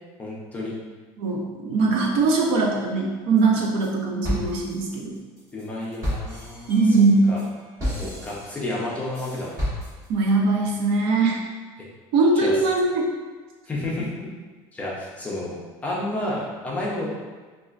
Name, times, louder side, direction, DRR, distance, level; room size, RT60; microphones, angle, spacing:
voice 1, 0.2-0.7 5.5-7.0 7.2-7.4 8.0-9.5 12.3-12.5 13.7-14.1 14.7-17.1, left 1 dB, 15° left, -6 dB, 0.6 m, -31 dB
voice 2, 1.2-5.2 6.7-7.3 10.1-11.4 12.1-13.0, right 3 dB, 65° right, 0 dB, 0.6 m, -21 dB
sound 1, 3.4-3.9 4.2-10.3, equal, 30° right, 1.3 m, -32 dB
4.1 x 2.4 x 2.4 m, 1.4 s
cardioid pair, 165°, 10 cm